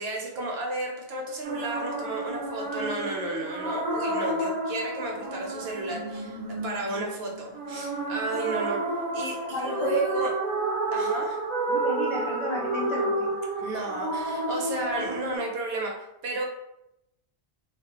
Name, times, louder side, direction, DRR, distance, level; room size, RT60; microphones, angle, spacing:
voice 1, 0.0-10.3 10.9-11.4 13.6-16.0 16.2-16.4, right 2 dB, 75° right, 0 dB, 0.8 m, -32 dB
sound 1, 1.4-15.4, right 2 dB, 55° right, 0.4 m, -30 dB
voice 2, 9.5-10.0 11.7-13.3, left 2 dB, 50° left, -7 dB, 0.4 m, -32 dB
2.2 x 2.0 x 2.8 m, 0.85 s
omnidirectional pair, 1.1 m